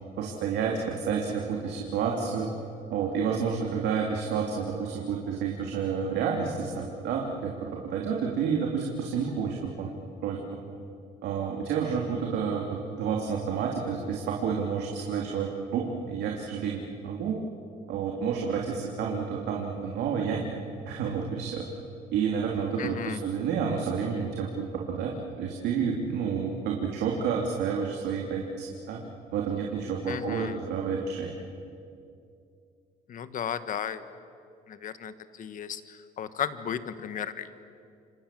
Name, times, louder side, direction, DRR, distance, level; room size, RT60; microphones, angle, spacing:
voice 1, 0.2-2.5 2.9-9.9 10.2-10.4 11.2-17.4 17.9-20.5 20.9-21.6 22.1-29.0 29.3-31.3, right 6 dB, 80° right, -1 dB, 3.3 m, -30 dB
voice 2, 22.8-23.2 30.1-30.6 33.1-34.0 34.7-37.5, left 8 dB, 50° left, 12 dB, 1.6 m, -35 dB
29.0 x 26.0 x 7.7 m, 2.5 s
cardioid pair, 110°, 17 cm